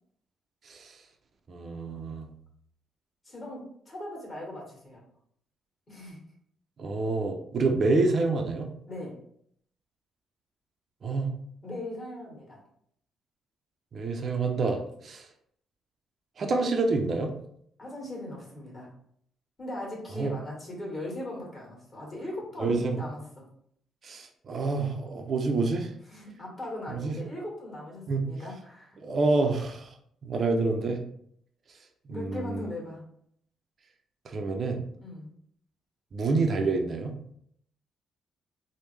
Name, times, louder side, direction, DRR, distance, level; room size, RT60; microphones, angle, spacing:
voice 1, 1.5-2.3 6.8-8.7 11.0-11.3 13.9-15.3 16.4-17.3 20.2-20.3 22.6-23.0 24.0-25.9 26.9-27.2 28.1-28.2 29.0-29.9 30.2-31.0 32.1-32.7 34.3-34.8 36.1-37.1, right 3 dB, 50° right, 3 dB, 0.4 m, -27 dB
voice 2, 3.2-5.0 5.9-6.2 8.9-9.2 11.6-12.6 17.8-18.9 19.6-23.4 26.1-29.0 30.4-30.5 32.1-33.0 35.0-35.3, left 1 dB, 30° left, -3 dB, 1.4 m, -39 dB
3.3 x 2.1 x 3.1 m, 0.68 s
cardioid pair, 90°, 0 cm